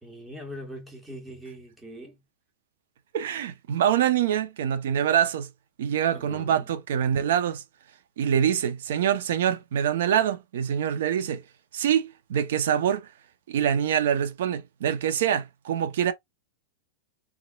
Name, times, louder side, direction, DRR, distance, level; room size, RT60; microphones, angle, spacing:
voice 1, 0.0-2.2 6.1-6.7, equal, 10° right, 1.6 m, -42 dB
voice 2, 3.1-5.5 5.8-7.6 8.2-11.4 11.7-13.1 13.5-16.1, right 9 dB, 75° right, 0.8 m, -25 dB
3.7 x 3.3 x 2.3 m
hypercardioid pair, 115°, 0 cm